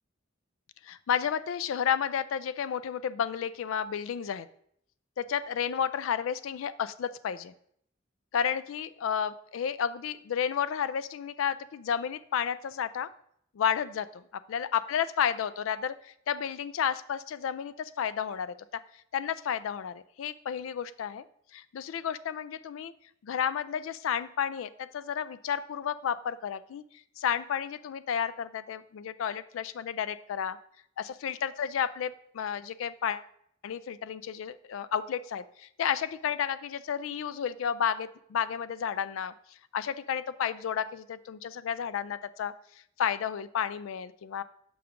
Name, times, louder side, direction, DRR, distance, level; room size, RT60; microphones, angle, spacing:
voice 1, 0.8-4.5 5.2-7.5 8.3-13.1 13.5-18.8 19.1-21.2 21.5-22.9 23.2-26.8 27.2-30.6 31.0-33.2 33.6-39.3 39.7-42.5 43.0-44.4, left 8 dB, 80° left, 16 dB, 0.3 m, -32 dB
6.2 x 5.8 x 3.6 m, 0.69 s
head